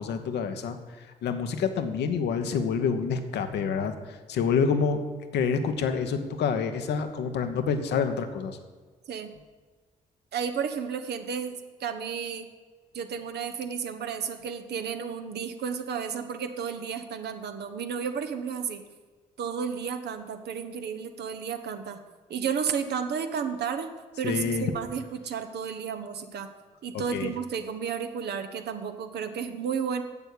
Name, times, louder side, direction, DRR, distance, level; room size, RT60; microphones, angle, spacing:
voice 1, 0.0-5.0 5.3-8.6 24.2-24.7 27.1-27.3, left 6 dB, 65° left, 7 dB, 1.0 m, -27 dB
voice 2, 10.3-12.5 12.9-18.8 19.4-22.0 22.3-23.9 24.2-26.5 26.8-30.0, right 7 dB, 60° right, 8 dB, 1.0 m, -32 dB
7.8 x 7.1 x 8.4 m, 1.4 s
hypercardioid pair, 40°, 19 cm